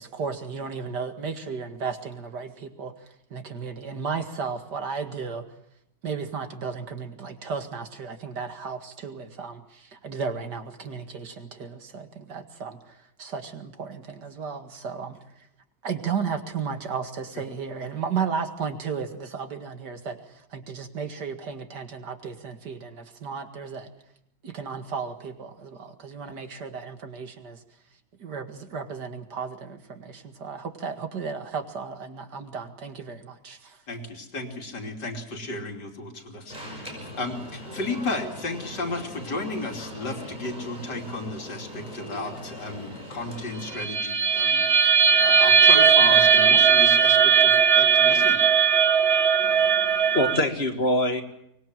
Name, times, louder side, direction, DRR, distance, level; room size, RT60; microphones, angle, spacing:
voice 1, 0.0-5.5 6.0-15.5 15.8-23.9 24.4-27.6 28.2-33.8, right 5 dB, 75° right, 6 dB, 2.6 m, -34 dB
voice 2, 33.9-48.4, left 2 dB, 75° left, 2 dB, 3.6 m, -34 dB
Alarm, 36.5-43.8, equal, 25° right, 6.0 m, -40 dB
sound 1, 43.8-50.4, right 7 dB, 45° right, 1.2 m, -18 dB
voice 3, 49.4-51.2, left 1 dB, 35° left, 5 dB, 2.3 m, -25 dB
24.5 x 20.5 x 7.6 m, 0.78 s
omnidirectional pair, 1.8 m